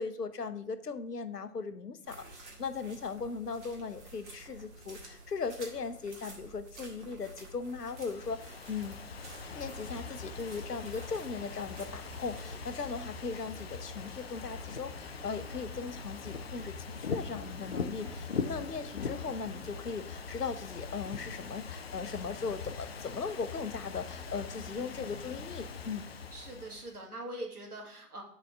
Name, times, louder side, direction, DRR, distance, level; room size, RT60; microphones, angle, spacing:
voice 1, 0.0-9.0 9.5-26.1, left 5 dB, 85° left, 11 dB, 0.8 m, -38 dB
sound 1, 2.0-12.8, right 2 dB, 50° right, 2.0 m, -51 dB
Ocean / Fireworks, 7.7-27.0, left 5 dB, 45° left, 0.4 m, -42 dB
sound 2, 9.4-19.8, left 1 dB, 30° right, 2.0 m, -49 dB
voice 2, 24.5-25.6 26.3-28.2, right 1 dB, 75° right, 1 dB, 2.0 m, -44 dB
7.3 x 4.2 x 3.6 m, 0.70 s
figure-of-eight pair, 130°, 46 cm